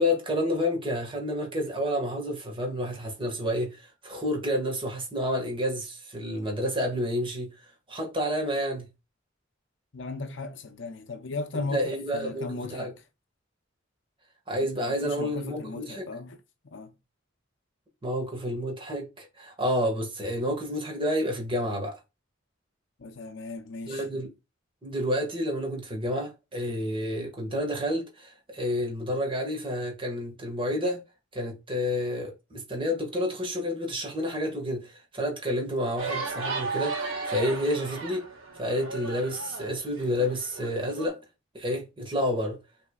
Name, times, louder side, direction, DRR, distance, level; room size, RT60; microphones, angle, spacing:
voice 1, 0.0-7.5 7.9-8.9 11.5-12.9 14.5-16.1 18.0-22.0 23.9-24.3 24.8-31.0 31.3-38.2 38.5-41.2 41.5-42.6, equal, 25° right, 1.7 m, -29 dB
voice 2, 9.9-12.9 14.8-16.4 16.6-16.9 23.0-24.0, left 3 dB, 65° left, 0.7 m, -36 dB
sound 1, 36.0-41.1, right 4 dB, 85° right, 1.7 m, -35 dB
5.8 x 3.4 x 2.3 m
head